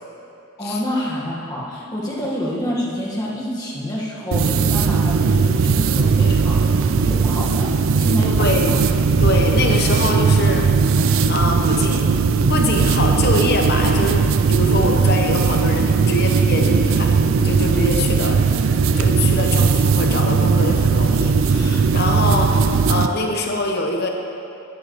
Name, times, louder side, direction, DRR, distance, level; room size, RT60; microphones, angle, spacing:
voice 1, 0.6-7.7 8.0-8.8, equal, 20° left, -5 dB, 1.4 m, -27 dB
sound 1, 4.3-23.1, right 5 dB, 70° right, 0.4 m, -18 dB
voice 2, 8.4-8.8 9.2-12.2 12.5-18.5 19.0-24.1, left 2 dB, 50° left, 2 dB, 0.9 m, -24 dB
13.0 x 10.0 x 3.1 m, 2.7 s
head